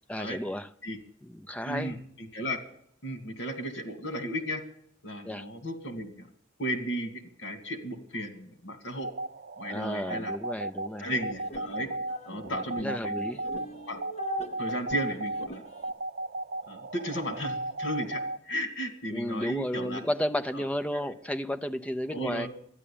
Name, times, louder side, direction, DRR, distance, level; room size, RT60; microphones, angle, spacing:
voice 1, 0.1-0.7 1.2-2.0 5.2-5.5 9.7-11.1 12.3-13.4 19.1-22.5, equal, 5° left, 0.6 m, -33 dB
voice 2, 1.6-2.6 3.0-4.6 5.0-6.3 6.6-9.1 9.6-10.3 11.0-11.9 12.3-13.1 13.9-14.0 14.6-15.6 16.7-20.0 20.5-20.6 20.9-21.1 22.1-22.5, equal, 70° left, 2.3 m, -35 dB
sound 1, 9.0-18.4, right 2 dB, 55° right, 0.5 m, -36 dB
sound 2, 10.8-15.9, left 1 dB, 35° left, 1.0 m, -42 dB
12.5 x 10.0 x 8.6 m
head